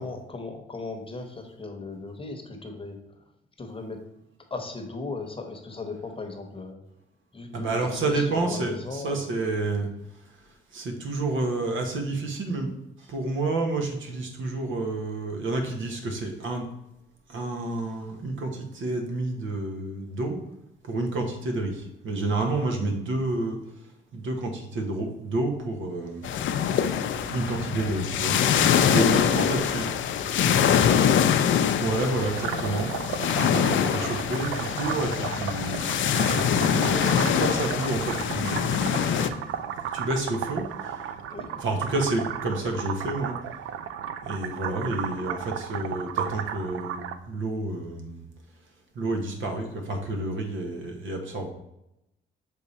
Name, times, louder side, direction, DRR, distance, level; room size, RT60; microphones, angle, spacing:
voice 1, 0.0-3.0 3.6-4.0 4.5-6.8 7.3-9.2 28.7-29.9 30.2-30.8 41.3-41.5, left 3 dB, 25° left, 5 dB, 1.0 m, -37 dB
voice 2, 7.5-9.9 10.7-12.7 13.1-16.6 17.3-20.4 20.8-23.6 24.1-26.3 27.3-28.4 28.8-30.0 31.8-32.9 33.4-38.7 39.9-41.0 41.4-43.3 44.2-48.2 48.9-51.5, right 2 dB, 70° right, 3 dB, 1.3 m, -29 dB
sound 1, 26.2-39.3, left 8 dB, 65° left, 0.5 m, -24 dB
sound 2, 32.4-47.2, right 9 dB, 85° right, 0.5 m, -34 dB
6.7 x 3.5 x 4.1 m, 0.85 s
cardioid pair, 95°, 21 cm